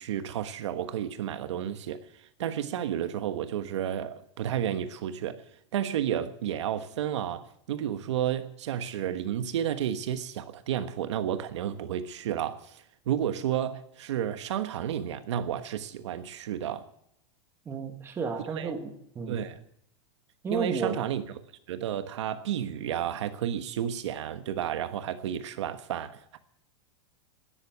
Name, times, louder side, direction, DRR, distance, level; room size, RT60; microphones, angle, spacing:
voice 1, 0.0-5.4 5.7-16.8 18.5-18.8 19.3-19.6 20.5-21.2 21.7-26.4, right 10 dB, 80° right, 1.3 m, -32 dB
voice 2, 17.6-19.4 20.4-21.0, right 5 dB, 15° right, 1.8 m, -33 dB
13.0 x 10.5 x 9.5 m
supercardioid pair, 155°, 15 cm